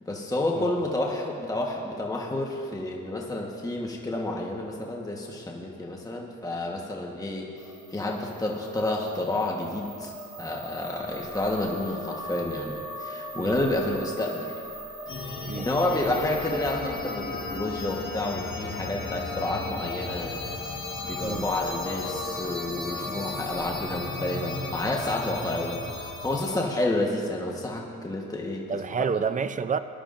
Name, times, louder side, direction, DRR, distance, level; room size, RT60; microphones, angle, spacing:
voice 1, 0.0-7.5 7.9-10.1 10.4-14.5 15.2-20.4 21.0-28.7, left 1 dB, 10° left, -1 dB, 1.3 m, -30 dB
sound 1, 7.6-26.6, equal, 10° right, 2.5 m, -42 dB
voice 2, 13.3-13.9 15.4-15.7 21.2-21.5 28.7-29.8, right 6 dB, 25° right, 12 dB, 0.5 m, -30 dB
sound 2, 15.1-26.7, left 3 dB, 40° left, 1.5 m, -35 dB
20.5 x 11.5 x 2.6 m, 2.5 s
cardioid pair, 90°, 30 cm